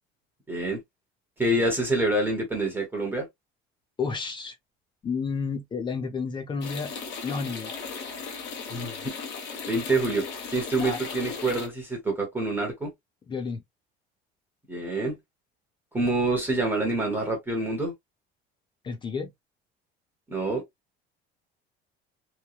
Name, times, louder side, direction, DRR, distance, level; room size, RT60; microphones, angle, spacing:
voice 1, 0.5-0.8 1.4-3.3 8.7-9.1 9.6-10.2 10.5-12.9 14.7-15.2 15.9-17.9 20.3-20.6, right 2 dB, 10° right, 1.0 m, -26 dB
voice 2, 4.0-4.6 5.0-6.9 7.2-7.7 10.8-11.0 13.3-13.6 18.8-19.3, left 5 dB, 25° left, 0.5 m, -31 dB
sound 1, 6.6-11.7, left 5 dB, 55° left, 1.2 m, -37 dB
3.1 x 2.1 x 2.2 m
cardioid pair, 155°, 21 cm